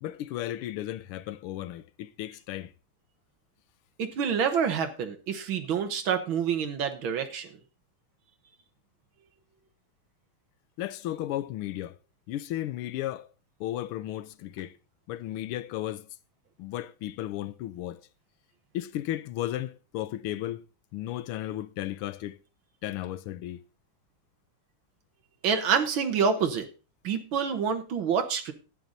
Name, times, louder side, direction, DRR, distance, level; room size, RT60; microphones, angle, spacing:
voice 1, 0.0-2.7 10.8-12.0 12.3-13.3 13.6-14.7 15.1-16.1 16.6-18.0 18.7-20.6 20.9-22.4 22.8-23.6, left 13 dB, 85° left, 1.6 m, -34 dB
voice 2, 4.0-7.6 25.4-26.7 27.0-28.5, right 6 dB, 70° right, 1.9 m, -27 dB
11.5 x 8.9 x 4.0 m
omnidirectional pair, 2.3 m